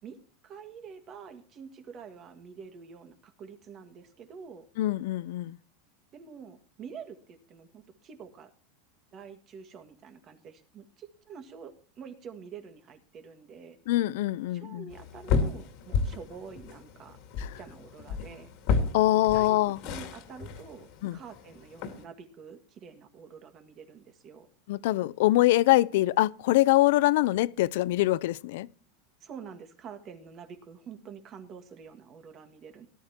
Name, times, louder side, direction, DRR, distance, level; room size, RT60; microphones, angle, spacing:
voice 1, 0.0-4.7 6.1-8.5 9.1-13.8 14.5-17.2 17.6-18.5 19.3-24.5 29.2-32.9, right 6 dB, 30° right, 1.8 m, -47 dB
voice 2, 4.8-5.6 13.9-14.9 17.4-17.6 18.9-19.8 21.0-21.2 24.7-28.7, left 16 dB, 65° left, 0.5 m, -24 dB
sound 1, 14.9-22.0, left 5 dB, 50° left, 2.1 m, -33 dB
18.0 x 12.0 x 2.9 m
supercardioid pair, 155°, 0 cm